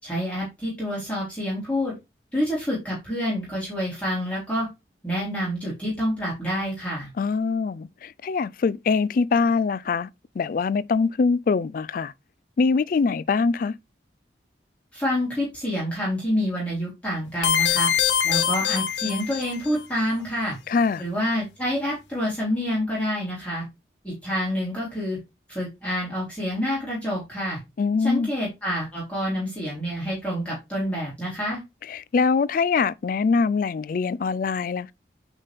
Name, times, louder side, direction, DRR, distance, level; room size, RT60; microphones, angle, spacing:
voice 1, 0.0-1.9 2.3-4.7 5.0-7.1 14.9-17.9 18.2-20.6 21.0-23.6 24.0-25.2 25.5-27.6 28.0-31.6, equal, 5° left, 3.2 m, -27 dB
voice 2, 7.2-10.1 10.4-12.1 12.6-13.7 20.7-21.0 27.8-28.3 31.9-34.9, left 4 dB, 50° left, 0.3 m, -23 dB
sound 1, 17.4-19.8, left 9 dB, 80° left, 1.3 m, -23 dB
8.9 x 4.1 x 3.4 m
head